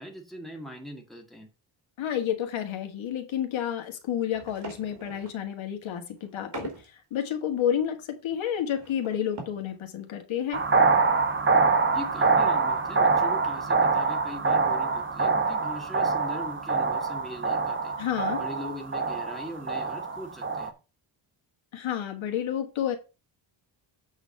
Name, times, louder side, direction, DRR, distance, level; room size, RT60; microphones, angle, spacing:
voice 1, 0.0-1.5 11.9-17.9 18.4-20.7, equal, ahead, 2.0 m, -41 dB
voice 2, 2.0-10.6 18.0-18.4 21.7-23.0, left 9 dB, 85° left, 1.7 m, -30 dB
sound 1, 4.3-5.5 6.2-6.9 7.3-7.4 7.6-9.8 10.1-10.2 10.5-10.6 10.9-11.0 12.6-13.2 13.6-13.8 14.1-14.4, right 4 dB, 60° right, 3.0 m, -44 dB
sound 2, 10.5-20.7, right 4 dB, 25° right, 0.9 m, -25 dB
8.1 x 4.1 x 6.6 m
wide cardioid pair, 140°, 46 cm